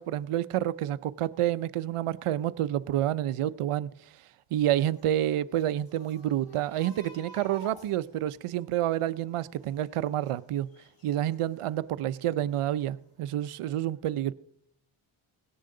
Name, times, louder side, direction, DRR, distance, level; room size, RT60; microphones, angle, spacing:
voice 1, 0.0-3.9 4.5-10.7 11.0-14.3, right 12 dB, 85° right, 0.6 m, -29 dB
sound 1, 4.7-11.6 12.1-12.9 13.2-13.3, right 1 dB, 45° left, 6.9 m, -53 dB
18.0 x 10.0 x 3.8 m
wide cardioid pair, 95°, 50 cm